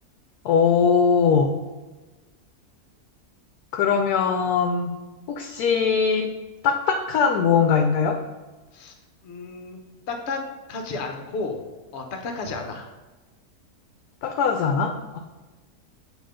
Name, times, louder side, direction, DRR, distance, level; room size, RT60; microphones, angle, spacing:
voice 1, 0.4-1.5 3.7-4.9 5.3-6.3 6.6-8.2 14.2-15.2, left 6 dB, 80° left, 5 dB, 1.1 m, -21 dB
voice 2, 9.2-9.8 10.1-11.6 11.9-12.9, left 3 dB, 55° left, 4 dB, 0.9 m, -32 dB
7.6 x 2.9 x 4.9 m, 1.2 s
omnidirectional pair, 1.6 m